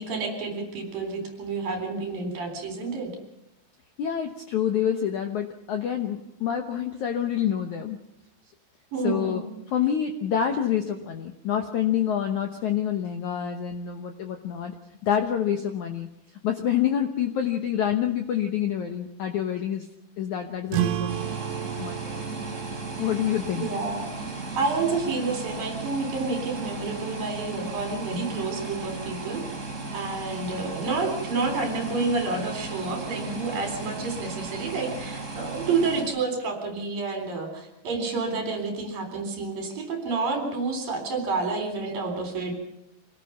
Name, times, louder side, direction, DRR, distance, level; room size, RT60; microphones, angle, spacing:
voice 1, 0.0-3.1 8.9-9.4 21.1-21.3 23.6-24.3 24.6-29.4 29.9-42.5, right 3 dB, 55° right, 4 dB, 5.3 m, -29 dB
voice 2, 4.0-8.0 9.0-9.4 9.7-14.7 15.0-16.1 16.4-19.8 20.2-21.1 21.8-22.2 23.0-23.6, left 9 dB, 85° left, 5 dB, 1.6 m, -27 dB
sound 1, 20.7-25.8, right 12 dB, 80° right, 3.5 m, -33 dB
sound 2, 21.1-36.0, right 3 dB, 15° right, 4.1 m, -36 dB
25.5 x 17.5 x 5.8 m, 0.82 s
omnidirectional pair, 5.1 m